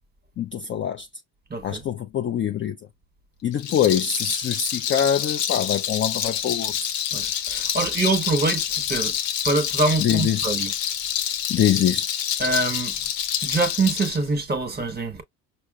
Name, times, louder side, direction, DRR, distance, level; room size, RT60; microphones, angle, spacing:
voice 1, 0.4-1.1 1.6-2.8 3.4-6.7 10.0-10.5 11.5-12.1, left 9 dB, 25° left, 0.4 m, -24 dB
voice 2, 1.5-1.8 7.1-9.1 9.4-10.7 12.4-12.9 13.4-15.2, right 3 dB, 20° right, 1.2 m, -24 dB
Rattle, 3.5-14.2, left 9 dB, 80° left, 0.8 m, -27 dB
5.3 x 2.0 x 2.3 m
hypercardioid pair, 65°, 49 cm